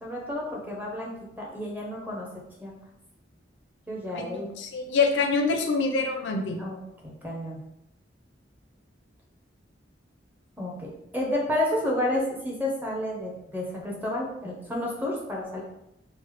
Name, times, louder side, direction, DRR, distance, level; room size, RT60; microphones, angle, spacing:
voice 1, 0.0-1.1 1.4-2.3 2.6-2.7 3.9-4.5 6.6-6.8 7.0-7.6 10.6-15.6, left 1 dB, 10° right, -2 dB, 0.6 m, -30 dB
voice 2, 4.1-6.6, left 4 dB, 70° left, 4 dB, 0.4 m, -26 dB
3.2 x 2.0 x 3.1 m, 0.83 s
head